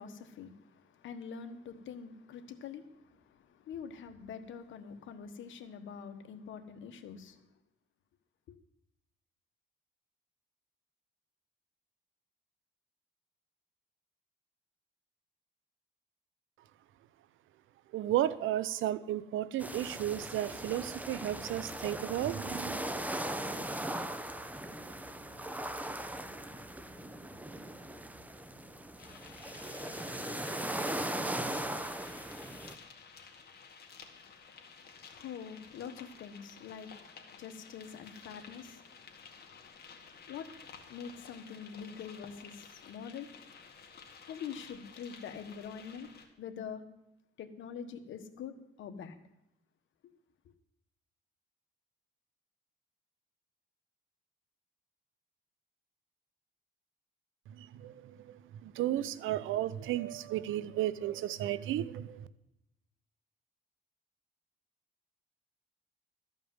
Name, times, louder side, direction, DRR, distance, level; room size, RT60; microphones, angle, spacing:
voice 1, 0.0-7.4 8.5-8.6 33.9-43.6 44.3-46.1 46.4-46.8 47.4-49.2, left 7 dB, 75° left, 1.3 m, -45 dB
voice 2, 17.9-22.8 57.5-62.3, right 12 dB, 80° right, 0.6 m, -34 dB
sound 1, 19.6-32.7, right 1 dB, 10° right, 0.9 m, -39 dB
sound 2, 29.0-46.3, left 5 dB, 55° left, 2.1 m, -53 dB
13.5 x 5.3 x 9.3 m
cardioid pair, 90°, 20 cm